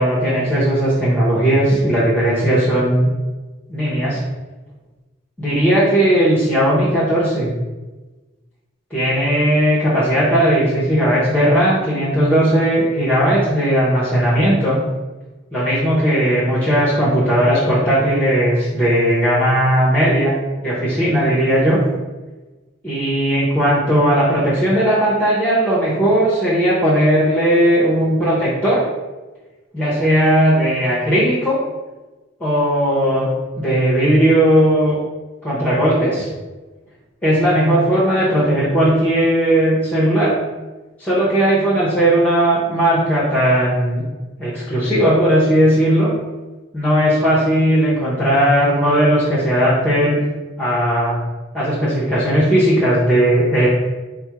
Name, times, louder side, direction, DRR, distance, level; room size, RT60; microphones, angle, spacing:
voice 1, 0.0-3.1 3.7-4.2 5.4-7.5 8.9-14.8 15.5-20.3 20.6-21.8 22.8-28.8 29.7-31.6 32.4-33.3 33.6-35.0 35.4-36.3 37.2-40.4 41.0-44.0 44.4-46.1 46.7-50.2 50.6-51.2 51.5-53.7, right 1 dB, 5° left, -9 dB, 0.8 m, -16 dB
4.3 x 2.2 x 4.6 m, 1.2 s
head